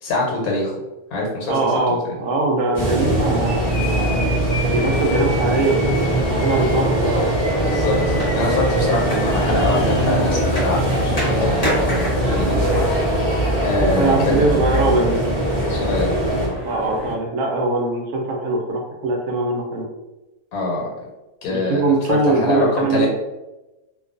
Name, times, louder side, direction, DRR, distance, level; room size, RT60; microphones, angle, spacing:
voice 1, 0.0-0.8 1.1-2.0 7.6-12.8 13.6-14.3 15.7-16.2 20.5-20.9 21.4-23.1, left 2 dB, 85° left, -2 dB, 1.2 m, -24 dB
voice 2, 1.5-4.2 4.7-7.2 8.8-9.0 14.0-15.2 16.6-19.8 21.5-23.1, right 2 dB, 70° right, 1 dB, 0.9 m, -22 dB
sound 1, 2.7-16.5, right 1 dB, 30° right, 0.4 m, -21 dB
sound 2, 3.4-11.4, left 2 dB, 70° left, 0.5 m, -35 dB
sound 3, 7.5-17.1, equal, 20° left, 0.6 m, -30 dB
2.5 x 2.2 x 2.4 m, 1.0 s
omnidirectional pair, 1.5 m